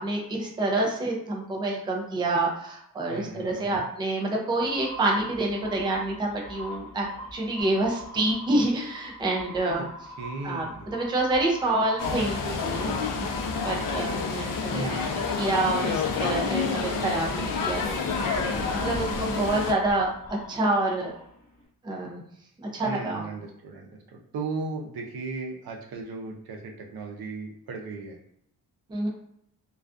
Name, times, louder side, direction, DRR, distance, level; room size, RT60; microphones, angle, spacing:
voice 1, 0.0-7.1 7.3-9.8 10.4-12.9 13.2-13.3 13.6-15.0 15.3-18.0 18.8-21.1 21.8-22.2 22.6-23.3 28.9-29.1, right 2 dB, 15° right, -1 dB, 0.4 m, -27 dB
voice 2, 3.1-3.8 10.2-11.0 14.7-15.4 18.3-18.9 19.3-19.5 22.8-28.2, right 3 dB, 80° right, 1 dB, 0.6 m, -37 dB
sound 1, 4.6-21.6, left 1 dB, 10° left, 0.8 m, -42 dB
sound 2, 12.0-19.7, left 5 dB, 65° left, 0.5 m, -29 dB
2.3 x 2.3 x 2.4 m, 0.71 s
wide cardioid pair, 165°, 36 cm